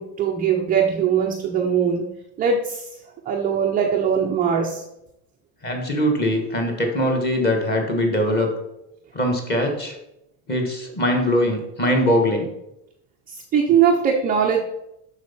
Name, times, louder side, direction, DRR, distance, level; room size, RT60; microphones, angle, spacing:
voice 1, 0.0-2.1 2.4-2.9 3.3-4.8 13.3-14.6, right 7 dB, 20° right, 0 dB, 0.3 m, -21 dB
voice 2, 5.6-8.5 9.1-9.9 10.5-12.5, equal, 20° left, 2 dB, 1.5 m, -21 dB
7.4 x 6.2 x 5.7 m, 0.84 s
cardioid pair, 180°, 49 cm